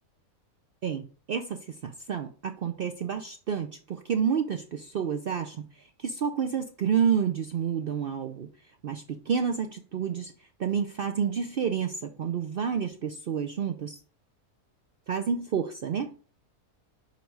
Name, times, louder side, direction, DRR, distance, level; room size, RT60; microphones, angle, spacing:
voice 1, 0.8-8.5 8.8-10.3 10.6-14.0 15.1-16.1, right 7 dB, 70° right, 6 dB, 0.5 m, -29 dB
5.1 x 5.0 x 4.6 m, 0.39 s
omnidirectional pair, 1.5 m